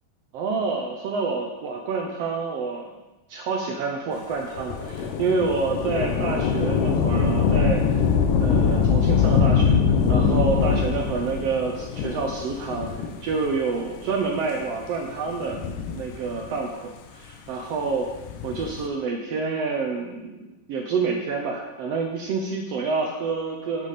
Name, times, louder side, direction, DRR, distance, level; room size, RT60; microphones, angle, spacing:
voice 1, 0.3-2.9 3.3-8.1 8.4-15.6 15.9-18.1 18.4-23.9, right 4 dB, 80° right, 2 dB, 1.4 m, -28 dB
Thunder / Rain, 4.6-13.5 14.3-14.4 15.3-16.6 18.1-18.9, left 6 dB, 80° left, 2.3 m, -23 dB
10.0 x 8.0 x 4.2 m, 1.1 s
omnidirectional pair, 3.8 m